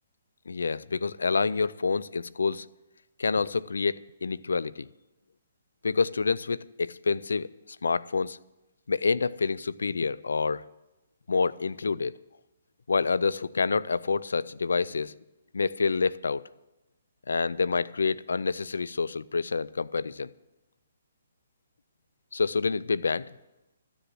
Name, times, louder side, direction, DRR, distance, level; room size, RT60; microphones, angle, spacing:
voice 1, 0.5-2.7 3.2-4.9 5.8-7.5 7.8-8.4 8.9-10.7 11.3-12.1 12.9-15.2 15.5-16.4 17.3-20.3 22.3-23.3, left 4 dB, 90° left, 0.4 m, -27 dB
13.0 x 7.0 x 7.7 m
hypercardioid pair, 155°, 0 cm